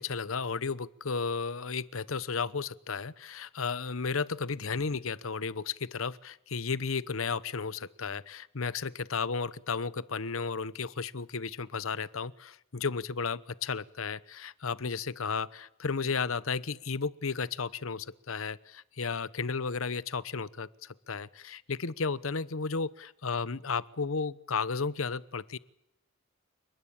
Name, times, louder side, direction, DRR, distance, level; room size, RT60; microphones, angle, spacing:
voice 1, 0.0-25.6, left 5 dB, 80° left, 18 dB, 0.9 m, -33 dB
30.0 x 19.5 x 8.8 m, 0.83 s
head